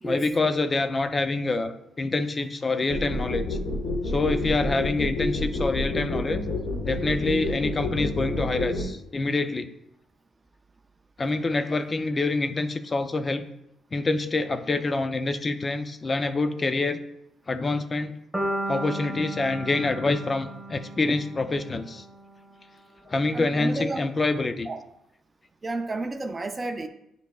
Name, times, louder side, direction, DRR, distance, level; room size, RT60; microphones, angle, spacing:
voice 1, 0.0-3.6 4.0-6.4 6.8-9.7 11.2-13.5 13.9-17.0 17.5-18.1 18.7-22.0 23.1-24.7, left 3 dB, 30° left, 10 dB, 0.5 m, -26 dB
sound 1, 2.9-8.8, left 2 dB, 90° left, 1.5 m, -28 dB
sound 2, 18.3-22.4, right 1 dB, 5° right, 1.5 m, -34 dB
voice 2, 23.3-24.0 24.7-24.8 25.6-26.9, right 2 dB, 25° right, 5 dB, 0.5 m, -31 dB
9.2 x 4.7 x 2.4 m, 0.81 s
cardioid pair, 90°, 0 cm